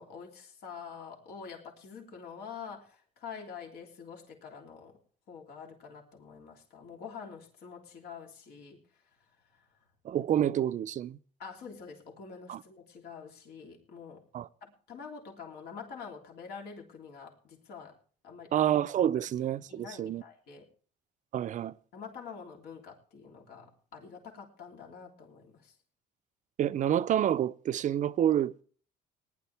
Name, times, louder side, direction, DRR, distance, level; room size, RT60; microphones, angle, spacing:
voice 1, 0.0-5.0 5.3-8.8 9.5-9.7 11.4-14.3 14.6-18.0 18.2-18.5 19.7-20.7 21.9-25.7, left 6 dB, 70° left, 3.2 m, -46 dB
voice 2, 10.0-11.2 12.5-12.6 14.3-14.5 18.5-20.2 21.3-21.8 26.6-28.6, right 10 dB, 45° right, 0.5 m, -28 dB
19.0 x 11.0 x 3.4 m
cardioid pair, 110°, 17 cm